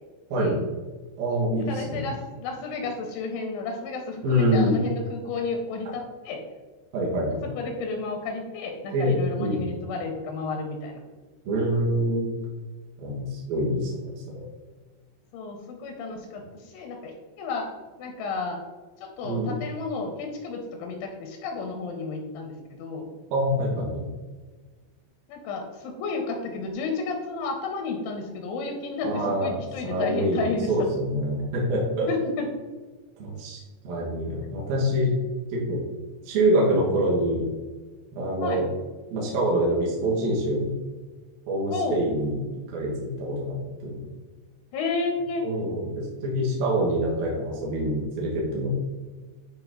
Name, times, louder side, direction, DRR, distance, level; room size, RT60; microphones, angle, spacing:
voice 1, 1.2-2.1 4.2-4.8 6.9-7.5 8.9-9.7 11.5-12.3 13.0-14.4 19.2-19.5 23.3-24.1 29.0-29.5 29.8-32.1 33.2-33.6 33.8-35.2 35.5-35.8 36.2-37.5 38.1-38.7 39.1-40.8 41.5-42.4 42.7-44.1 45.4-48.7, right 1 dB, 65° right, -4 dB, 2.6 m, -25 dB
voice 2, 1.7-6.4 7.6-11.0 15.3-18.6 19.0-23.1 25.3-30.7 32.1-32.5 38.4-38.7 41.7-42.0 44.7-45.4, left 4 dB, 80° left, 2 dB, 3.0 m, -32 dB
9.2 x 3.7 x 3.7 m, 1.3 s
omnidirectional pair, 5.6 m